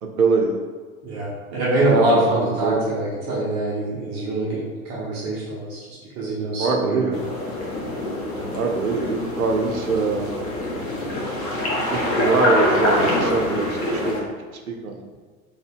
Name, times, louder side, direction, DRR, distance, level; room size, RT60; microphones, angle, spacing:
voice 1, 0.0-0.5 1.9-2.3 2.6-2.8 6.6-7.2 8.5-10.3 11.8-14.3 14.7-15.0, right 4 dB, 80° right, 3 dB, 0.6 m, -23 dB
voice 2, 1.0-4.6 4.9-5.8 6.2-7.1, right 1 dB, 25° right, -6 dB, 0.5 m, -23 dB
sound 1, 7.1-14.2, left 1 dB, 30° left, 0.6 m, -25 dB
2.8 x 2.1 x 3.4 m, 1.5 s
figure-of-eight pair, 95°, 43 cm